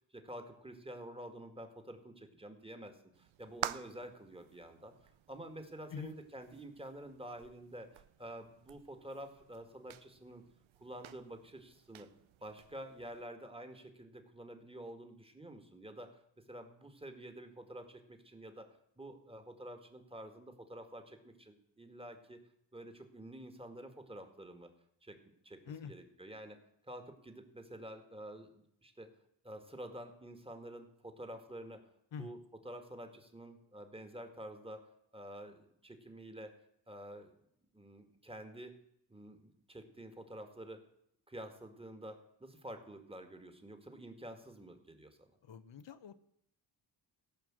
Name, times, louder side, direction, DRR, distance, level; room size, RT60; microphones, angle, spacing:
voice 1, 0.0-4.9 5.3-10.4 10.8-12.1 12.4-16.2 16.5-18.7 19.0-22.4 22.7-24.7 25.0-25.2 25.4-26.6 26.8-29.1 29.4-31.9 32.2-34.8 35.1-36.5 36.9-37.4 37.7-38.7 39.1-40.9 41.3-45.3, right 1 dB, 10° right, 6 dB, 2.1 m, -49 dB
sound 1, 3.1-13.2, right 12 dB, 85° right, 0.6 m, -49 dB
voice 2, 45.4-46.2, left 6 dB, 70° left, 12 dB, 1.1 m, -45 dB
16.0 x 5.8 x 7.6 m, 0.74 s
cardioid pair, 55°, 46 cm